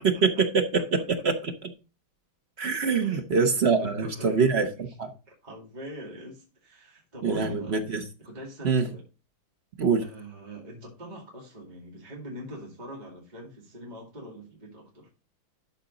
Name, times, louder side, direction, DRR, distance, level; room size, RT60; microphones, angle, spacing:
voice 1, 0.0-1.7 2.6-4.7 5.0-5.1 7.2-8.0 8.6-8.9 9.8-10.1, right 5 dB, 50° right, 0.7 m, -24 dB
voice 2, 3.8-4.9 5.3-7.8 8.2-9.0 10.0-15.1, equal, 20° right, 2.2 m, -43 dB
12.0 x 4.3 x 3.8 m
omnidirectional pair, 2.3 m